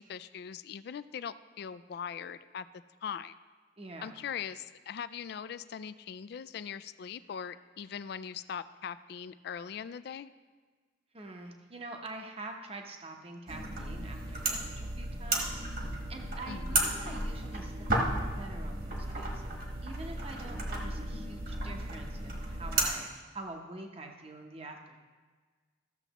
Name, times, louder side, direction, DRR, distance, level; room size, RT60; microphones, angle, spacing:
voice 1, 0.0-2.7 3.0-3.3 4.0-10.3 16.5-16.8, left 7 dB, 55° left, 14 dB, 0.3 m, -41 dB
voice 2, 3.8-4.2 11.1-15.6 16.1-19.4 19.8-25.0, right 2 dB, 30° right, 3 dB, 0.8 m, -45 dB
sound 1, 13.5-22.9, right 2 dB, 50° right, 1.4 m, -34 dB
14.0 x 6.9 x 3.0 m, 1.4 s
head